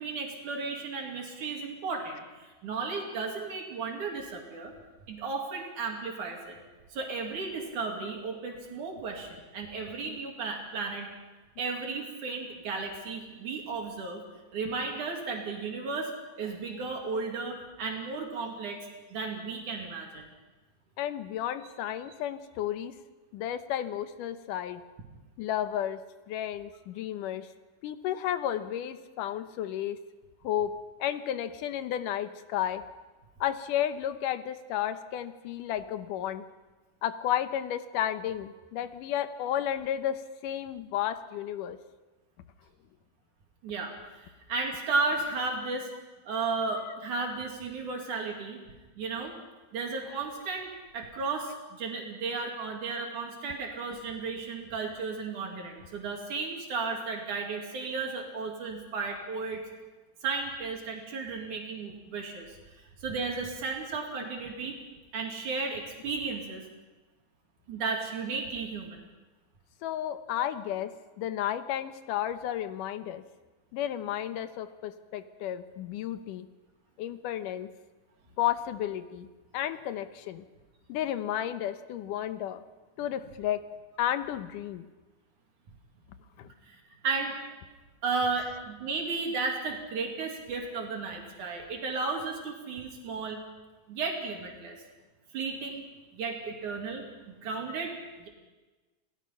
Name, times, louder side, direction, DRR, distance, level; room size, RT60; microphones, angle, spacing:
voice 1, 0.0-4.7 5.1-6.6 6.9-11.1 11.6-14.2 14.5-16.1 16.4-20.3 43.6-45.9 46.3-48.6 49.0-49.3 49.7-59.6 60.2-62.5 63.0-64.8 65.1-66.6 67.7-69.0 70.4-70.5 86.7-87.3 88.0-93.4 93.9-94.8 95.3-95.9 96.1-97.0 97.4-98.3, right 4 dB, 70° right, 1 dB, 3.9 m, -34 dB
voice 2, 21.0-23.0 23.3-24.8 25.4-26.0 26.3-27.5 27.8-30.0 30.4-30.7 31.0-32.8 33.4-36.4 37.0-41.8 69.8-73.2 73.7-76.5 77.0-77.7 78.4-79.3 79.5-80.5 80.9-82.6 83.0-83.6 84.0-84.9 86.4-86.5, left 11 dB, 90° left, 11 dB, 2.6 m, -32 dB
28.0 x 17.5 x 5.8 m, 1.2 s
omnidirectional pair, 3.6 m